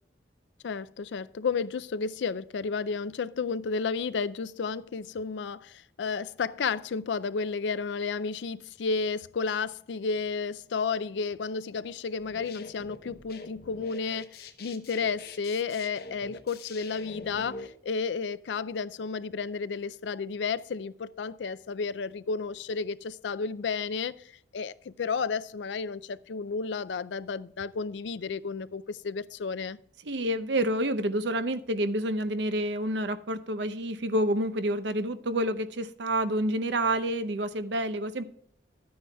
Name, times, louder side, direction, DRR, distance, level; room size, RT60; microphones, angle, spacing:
voice 1, 0.6-29.8, left 5 dB, 85° left, 0.4 m, -32 dB
sound 1, 12.2-17.7, left 3 dB, 60° left, 0.9 m, -44 dB
voice 2, 30.0-38.2, right 1 dB, 75° right, 0.7 m, -28 dB
12.5 x 9.4 x 2.3 m
head